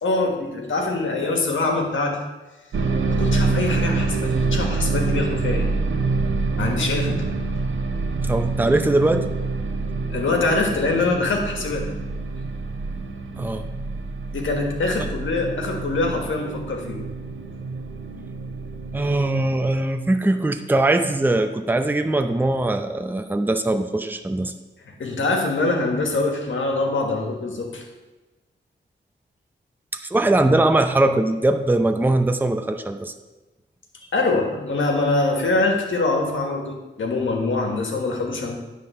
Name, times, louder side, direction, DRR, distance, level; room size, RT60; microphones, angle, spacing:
voice 1, 0.0-2.2 3.1-5.7 6.6-7.2 10.1-11.9 14.3-17.0 24.8-27.8 34.1-38.6, left 3 dB, 85° left, 2 dB, 1.5 m, -24 dB
sound 1, 2.7-19.7, right 3 dB, 85° right, 0.8 m, -26 dB
voice 2, 8.2-9.2 13.4-13.7 15.0-15.1 18.9-24.5 29.9-33.1, right 2 dB, 10° right, 7 dB, 0.6 m, -21 dB
9.7 x 3.7 x 6.7 m, 1.2 s
wide cardioid pair, 85°, 20 cm